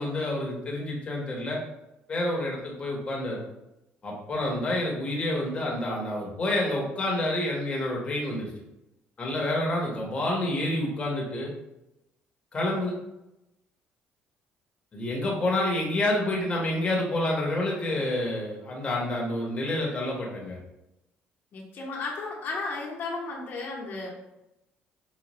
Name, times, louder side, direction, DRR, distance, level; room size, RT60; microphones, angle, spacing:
voice 1, 0.0-1.6 2.1-3.4 4.0-8.5 9.2-11.5 12.5-13.0 14.9-20.6, left 1 dB, 30° left, -2 dB, 1.1 m, -28 dB
voice 2, 21.5-24.1, left 3 dB, 55° left, -2 dB, 1.1 m, -34 dB
5.0 x 2.4 x 3.0 m, 0.90 s
cardioid pair, 135°, 4 cm